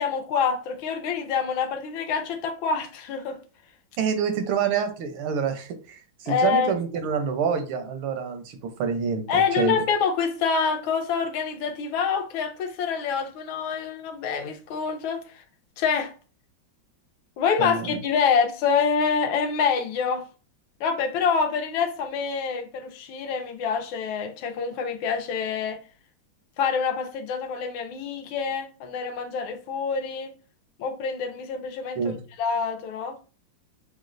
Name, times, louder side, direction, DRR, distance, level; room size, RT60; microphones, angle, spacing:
voice 1, 0.0-3.4 6.3-6.7 9.3-15.4 15.8-16.1 17.4-20.3 20.8-25.8 26.6-30.3 30.8-33.2, left 6 dB, 80° left, 1.4 m, -26 dB
voice 2, 4.0-9.8 17.6-18.0 32.0-32.2, right 6 dB, 85° right, 1.5 m, -27 dB
6.1 x 2.1 x 2.5 m
omnidirectional pair, 2.2 m